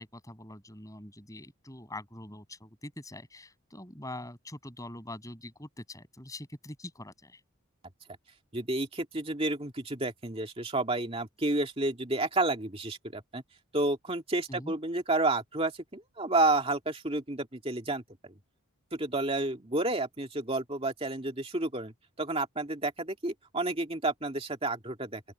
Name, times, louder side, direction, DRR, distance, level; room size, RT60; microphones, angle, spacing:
voice 1, 0.0-7.4 14.5-14.7, left 1 dB, 15° left, 7.2 m, -44 dB
voice 2, 8.5-13.4 13.7-18.0 18.9-25.2, right 2 dB, 25° right, 2.5 m, -30 dB
open air
head